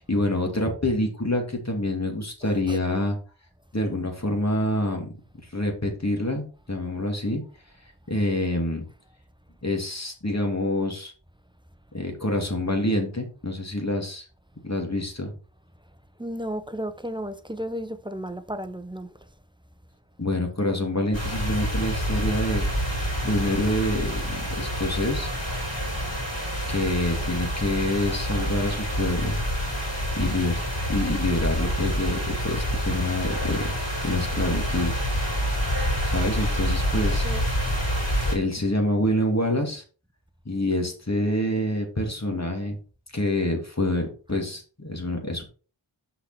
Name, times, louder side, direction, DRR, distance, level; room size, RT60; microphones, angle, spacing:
voice 1, 0.0-3.2 3.7-5.1 5.5-7.4 8.1-8.8 9.6-11.1 11.9-14.2 14.6-15.3 20.2-22.7 23.2-25.3 26.7-29.4 30.1-30.6 30.9-33.7 34.0-34.9 36.0-37.3 38.3-39.8 40.5-42.8 43.1-45.4, left 1 dB, 35° left, 2.5 m, -26 dB
voice 2, 2.4-2.8 16.2-19.1 36.9-37.5, equal, 10° right, 0.8 m, -34 dB
sound 1, 21.1-38.4, equal, 60° left, 4.3 m, -27 dB
6.5 x 5.8 x 4.3 m
wide cardioid pair, 40°, 48 cm